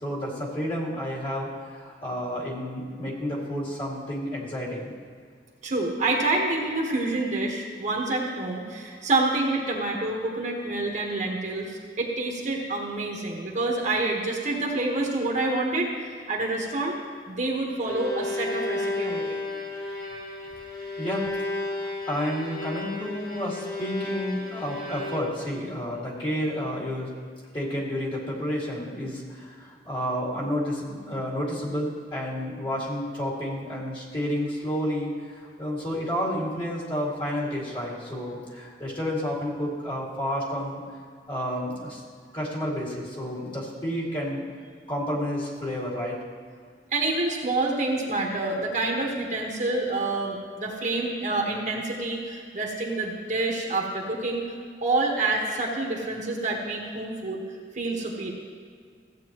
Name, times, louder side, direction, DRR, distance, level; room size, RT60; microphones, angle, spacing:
voice 1, 0.0-4.9 21.0-21.3 21.6-27.1 27.5-40.8 41.3-42.0 42.3-44.4 44.9-46.2, equal, 30° left, -5 dB, 2.2 m, -30 dB
voice 2, 5.6-15.9 16.3-17.0 17.3-19.4 46.9-54.4 54.8-57.4 57.7-58.3, right 2 dB, 45° right, -1 dB, 1.4 m, -27 dB
Bowed string instrument, 17.7-25.6, left 2 dB, 50° left, 1.9 m, -33 dB
15.5 x 8.4 x 3.0 m, 2.1 s
head